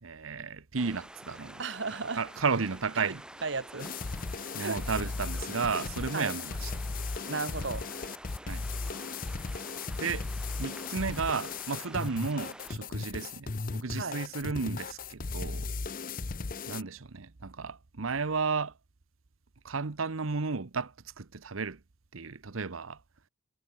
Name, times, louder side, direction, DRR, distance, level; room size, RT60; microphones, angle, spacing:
voice 1, 0.0-1.6 2.2-3.2 4.5-6.7 8.4-8.6 10.0-10.3 10.6-15.7 16.7-18.7 19.6-21.8 22.1-23.0, right 4 dB, 90° right, 0.9 m, -33 dB
sound 1, 0.8-12.8, right 1 dB, 5° right, 0.6 m, -49 dB
voice 2, 1.6-2.3 3.0-3.1 3.4-3.9 4.6-4.8 6.1-6.3 7.3-7.9 13.9-14.2, right 4 dB, 60° right, 1.4 m, -34 dB
sound 2, 3.8-16.8, left 4 dB, 45° left, 0.7 m, -36 dB
head